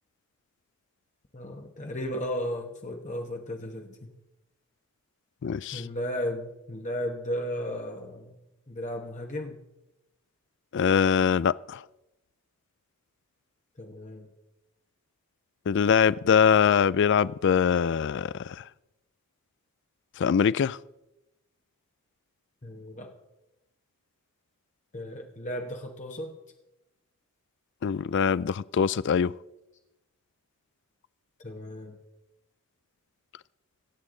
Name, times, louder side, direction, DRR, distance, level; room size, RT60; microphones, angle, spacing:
voice 1, 1.3-4.1 5.7-9.6 13.8-14.3 22.6-23.1 24.9-26.4 31.4-32.0, equal, 35° left, 1.1 m, -35 dB
voice 2, 5.4-5.8 10.7-11.8 15.7-18.6 20.2-20.8 27.8-29.3, left 7 dB, 55° left, 0.3 m, -23 dB
25.5 x 8.5 x 3.8 m
head